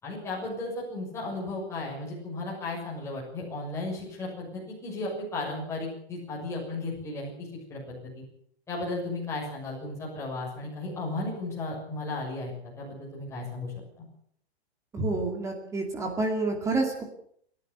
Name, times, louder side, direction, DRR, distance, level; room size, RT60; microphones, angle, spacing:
voice 1, 0.0-8.2 8.7-14.0, left 2 dB, 10° left, -4 dB, 6.7 m, -35 dB
voice 2, 14.9-17.0, right 3 dB, 10° right, 2 dB, 2.4 m, -28 dB
29.0 x 11.5 x 8.2 m, 0.64 s
hypercardioid pair, 170°, 32 cm